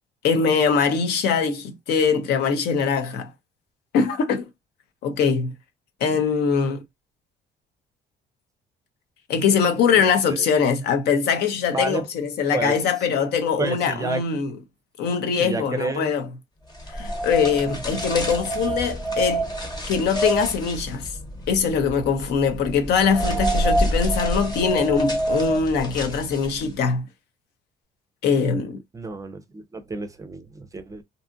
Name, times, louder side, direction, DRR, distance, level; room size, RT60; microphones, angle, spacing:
voice 1, 0.2-3.3 3.9-4.5 5.0-5.5 6.0-6.8 9.3-14.5 15.0-16.3 16.9-19.4 19.9-21.1 21.5-27.1 28.2-28.8, left 6 dB, 75° left, 0.7 m, -22 dB
voice 2, 10.0-10.5 11.7-12.0 12.5-12.8 13.6-14.2 15.4-16.1 28.9-31.0, right 3 dB, 20° right, 0.5 m, -30 dB
sound 1, 16.8-26.7, right 1 dB, 25° left, 1.1 m, -27 dB
2.6 x 2.4 x 2.5 m
cardioid pair, 110°, 17 cm